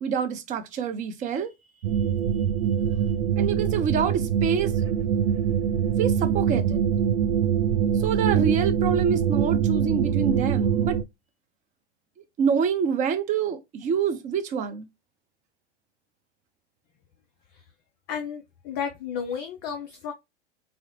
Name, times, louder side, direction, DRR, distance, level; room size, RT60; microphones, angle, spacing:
voice 1, 0.0-1.5 3.4-4.7 6.0-6.8 8.0-11.0 12.4-14.9, right 7 dB, 20° right, 0.4 m, -26 dB
sound 1, 1.8-11.0, right 8 dB, 75° right, 0.5 m, -24 dB
voice 2, 18.1-20.1, left 7 dB, 30° left, 0.5 m, -32 dB
3.7 x 2.0 x 2.8 m
hypercardioid pair, 100°, 36 cm